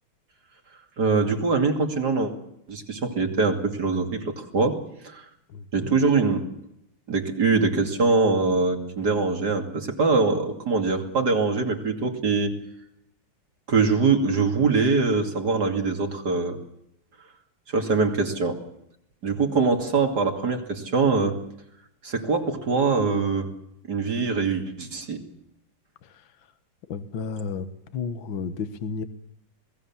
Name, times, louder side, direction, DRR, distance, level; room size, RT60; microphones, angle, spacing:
voice 1, 1.0-2.3 2.7-5.2 5.7-6.5 7.1-12.5 13.7-16.6 17.7-18.6 19.2-21.4 22.0-23.5 23.9-25.2, right 4 dB, 50° right, 5 dB, 3.0 m, -23 dB
voice 2, 5.5-5.9 26.0-26.2 26.9-27.7 27.9-29.0, left 5 dB, 65° left, 11 dB, 2.0 m, -32 dB
27.5 x 19.5 x 7.3 m, 0.79 s
omnidirectional pair, 2.4 m